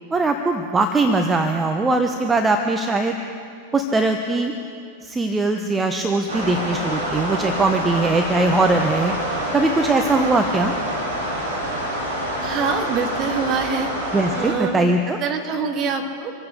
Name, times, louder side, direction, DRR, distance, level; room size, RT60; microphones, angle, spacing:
voice 1, 0.1-3.2 3.7-4.5 5.0-10.7 14.1-15.2, right 2 dB, 15° right, 5 dB, 0.9 m, -21 dB
sound 1, 6.3-14.5, equal, 65° right, 3.9 m, -27 dB
voice 2, 12.4-13.9 14.3-14.8 15.2-16.3, right 5 dB, 35° right, 2 dB, 2.0 m, -25 dB
26.0 x 14.5 x 3.8 m, 2.4 s
figure-of-eight pair, 90°, 0 cm